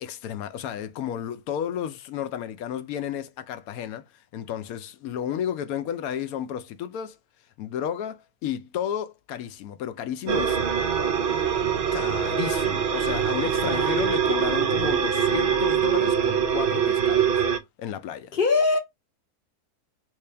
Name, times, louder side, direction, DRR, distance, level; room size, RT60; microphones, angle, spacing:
voice 1, 0.0-4.1 4.3-7.2 7.6-10.6 11.9-17.4 17.8-18.4, left 9 dB, 75° left, 1.0 m, -32 dB
sound 1, 10.3-17.6, right 7 dB, 65° right, 0.6 m, -23 dB
voice 2, 13.6-13.9 18.3-18.8, left 4 dB, 50° left, 0.7 m, -22 dB
3.3 x 2.7 x 3.2 m
omnidirectional pair, 1.6 m